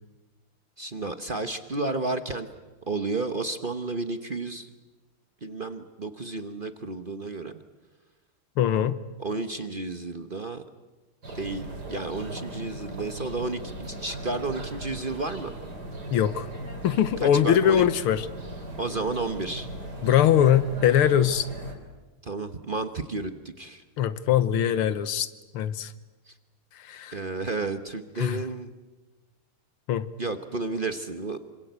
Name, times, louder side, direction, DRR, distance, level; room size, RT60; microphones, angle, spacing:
voice 1, 0.8-2.5 2.9-4.7 5.4-7.5 9.2-10.6 11.3-15.6 17.2-17.9 18.8-19.7 22.2-23.8 26.3-26.4 27.1-28.7 30.2-31.4, right 3 dB, 35° right, 8 dB, 0.9 m, -32 dB
voice 2, 8.6-9.0 16.1-16.5 16.8-18.3 20.0-21.5 24.0-25.3 25.5-25.9 26.8-27.2 28.2-28.4 29.9-30.1, left 9 dB, 90° left, 14 dB, 2.0 m, -22 dB
sound 1, 11.2-21.7, right 1 dB, 50° right, 4.6 m, -38 dB
27.0 x 25.5 x 8.1 m, 1.1 s
omnidirectional pair, 2.3 m